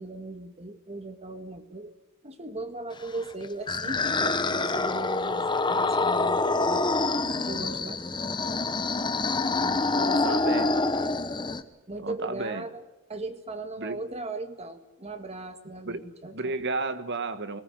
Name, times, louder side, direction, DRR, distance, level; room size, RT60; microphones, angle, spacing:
voice 1, 0.0-1.9 2.2-6.8 7.5-8.3 9.6-10.7 11.9-12.8 13.1-16.6, right 2 dB, 30° right, 8 dB, 1.9 m, -38 dB
sound 1, 3.2-11.6, left 3 dB, 20° left, 1.1 m, -26 dB
voice 2, 10.0-10.7 12.0-12.7 13.8-14.0 15.8-16.0 16.3-17.6, right 3 dB, 55° right, 11 dB, 1.5 m, -32 dB
21.0 x 19.0 x 9.5 m, 0.98 s
head